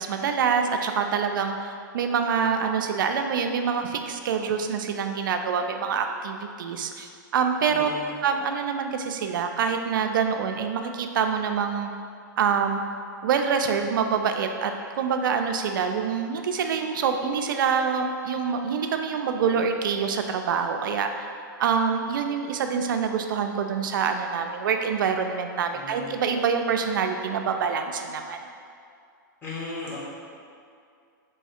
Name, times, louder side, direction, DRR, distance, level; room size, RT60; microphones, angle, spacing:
voice 1, 0.0-1.6 1.9-7.9 8.2-11.9 12.4-12.8 13.2-21.1 21.6-28.4, right 6 dB, 75° right, 6 dB, 0.4 m, -26 dB
voice 2, 7.7-8.1 25.7-26.2 29.4-30.0, left 3 dB, 20° left, -8 dB, 1.1 m, -36 dB
3.1 x 2.3 x 4.2 m, 2.4 s
hypercardioid pair, 130°, 11 cm